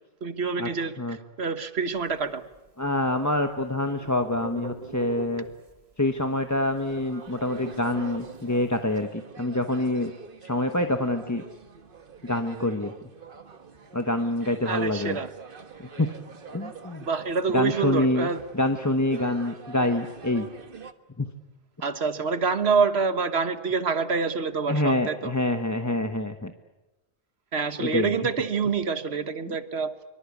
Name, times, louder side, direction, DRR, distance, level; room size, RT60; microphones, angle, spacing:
voice 1, 0.2-2.5 14.6-15.3 17.0-18.4 21.8-25.3 27.5-29.9, right 5 dB, 80° right, 11 dB, 1.6 m, -27 dB
sound 1, 2.0-3.1 3.4-6.0 6.3-6.4 6.5-9.1, right 3 dB, 35° right, 1.5 m, -41 dB
voice 2, 2.8-5.4 6.0-10.1 10.4-11.4 12.2-12.9 13.9-15.2 15.8-16.1 16.5-17.1 17.5-18.3 18.5-20.5 21.2-21.3 24.7-26.5 27.8-28.1, left 1 dB, 15° left, 6 dB, 1.1 m, -26 dB
sound 2, 6.8-20.9, right 5 dB, 55° right, 1.5 m, -45 dB
24.5 x 24.0 x 8.5 m, 1.0 s
omnidirectional pair, 1.1 m